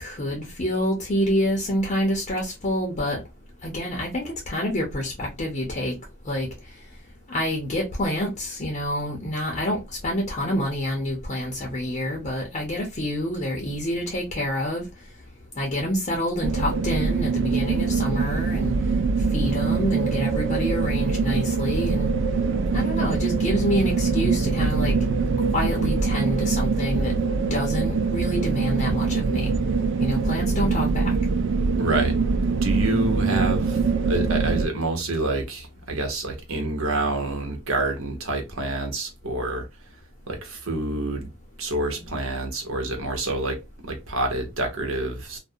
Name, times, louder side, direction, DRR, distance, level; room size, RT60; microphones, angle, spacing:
voice 1, 0.0-3.2 3.6-5.9 6.2-6.5 7.3-14.9 15.6-18.7 19.3-22.1 22.7-25.0 25.5-27.2 27.5-29.5 30.0-31.1, equal, 35° left, 0.6 m, -27 dB
sound 1, 16.4-34.7, right 4 dB, 65° right, 0.3 m, -23 dB
voice 2, 31.8-32.2 32.6-39.7 40.3-41.3 41.6-45.4, right 2 dB, 85° right, 0.9 m, -27 dB
2.4 x 2.0 x 2.6 m
head